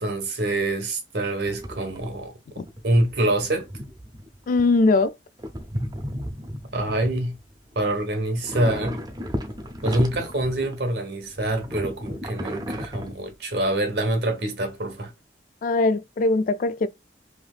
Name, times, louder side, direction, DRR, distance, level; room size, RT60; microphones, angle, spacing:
voice 1, 0.0-2.3 2.8-3.7 6.7-7.4 7.7-9.0 9.8-15.1, right 1 dB, 70° right, 1.1 m, -25 dB
sound 1, 1.5-2.2 2.5-5.1 5.4-8.0 8.3-10.9 11.2-13.6, equal, 25° right, 0.6 m, -34 dB
voice 2, 4.5-5.1 15.6-16.9, left 3 dB, 50° left, 0.3 m, -21 dB
3.3 x 2.8 x 2.3 m
head